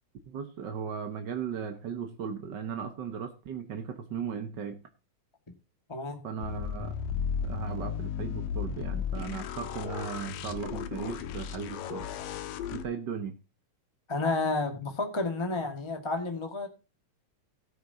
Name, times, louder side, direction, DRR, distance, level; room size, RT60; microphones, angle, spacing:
voice 1, 0.3-4.8 6.2-6.9 7.4-12.1 12.7-13.3, right 7 dB, 60° right, 6 dB, 1.1 m, -37 dB
sound 1, 6.4-12.8, left 7 dB, 85° left, 2.7 m, -35 dB
voice 2, 14.1-16.7, left 3 dB, 15° left, 5 dB, 0.9 m, -31 dB
17.0 x 9.4 x 2.8 m, 0.30 s
omnidirectional pair, 3.7 m